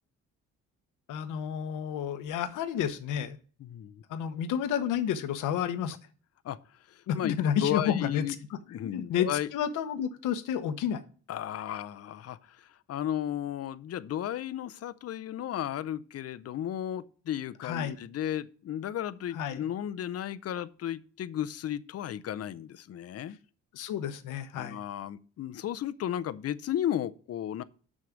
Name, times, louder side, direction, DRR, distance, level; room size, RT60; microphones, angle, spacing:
voice 1, 1.1-3.4 4.1-6.0 7.1-11.0 17.6-18.0 19.3-19.7 23.7-24.8, left 9 dB, 90° left, 1.0 m, -31 dB
voice 2, 3.6-4.0 6.4-6.6 6.9-7.3 7.6-8.4 8.7-9.5 11.3-23.4 24.6-27.6, left 11 dB, 55° left, 0.6 m, -34 dB
6.5 x 6.2 x 7.1 m
cardioid pair, 90°, 30 cm